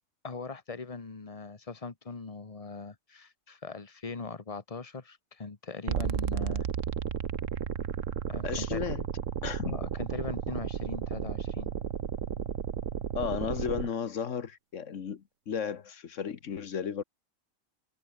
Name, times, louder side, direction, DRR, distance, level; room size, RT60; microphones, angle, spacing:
voice 1, 0.2-6.7 8.3-8.8 9.6-11.7, left 4 dB, 25° left, 1.4 m, -40 dB
sound 1, 5.9-13.9, right 8 dB, 65° right, 1.4 m, -33 dB
voice 2, 8.4-9.1 9.4-9.8 13.1-17.0, left 7 dB, 60° left, 1.4 m, -34 dB
omnidirectional pair, 1.5 m